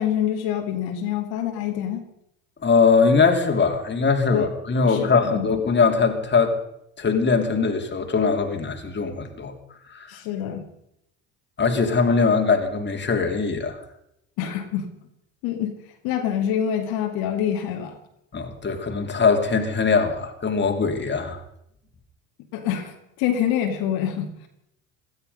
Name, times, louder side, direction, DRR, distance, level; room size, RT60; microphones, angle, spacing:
voice 1, 0.0-2.0 4.3-4.4 4.8-5.5 10.1-10.6 14.4-14.9 15.4-15.7 16.0-18.0 22.5-24.5, left 9 dB, 70° left, 4 dB, 2.2 m, -26 dB
voice 2, 2.6-6.6 7.0-9.5 9.9-10.2 11.6-13.8 18.3-21.4, left 5 dB, 30° left, 4 dB, 2.8 m, -21 dB
17.0 x 12.5 x 5.4 m, 0.78 s
hypercardioid pair, 70°, 39 cm